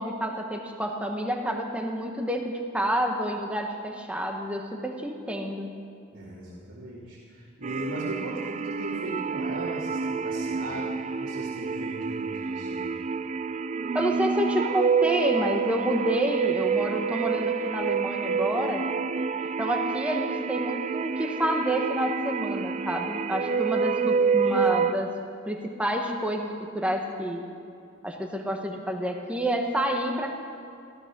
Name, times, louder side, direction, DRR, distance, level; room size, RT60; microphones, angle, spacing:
voice 1, 0.0-5.7 13.9-18.8 19.6-25.1 25.4-27.5 28.0-30.3, equal, 5° right, 2 dB, 1.3 m, -29 dB
voice 2, 6.1-12.9, right 1 dB, 75° right, -7 dB, 2.8 m, -38 dB
sound 1, 7.6-24.9, right 6 dB, 35° right, 0.3 m, -28 dB
15.5 x 13.0 x 6.2 m, 2.5 s
head